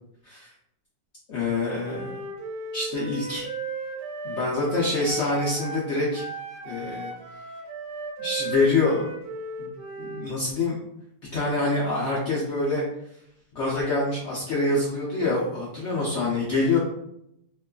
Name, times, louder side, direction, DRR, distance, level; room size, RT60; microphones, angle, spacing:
voice 1, 1.3-2.1 2.7-3.5 4.2-6.3 6.6-7.1 8.2-9.1 9.6-9.7 10.0-10.8 11.3-12.8 13.5-16.8, left 3 dB, 80° left, -5 dB, 0.6 m, -25 dB
Wind instrument woodwind instrument, 1.8-5.9 6.1-10.3, right 3 dB, 85° right, 1.2 m, -36 dB
3.0 x 2.2 x 2.3 m, 0.76 s
omnidirectional pair, 1.8 m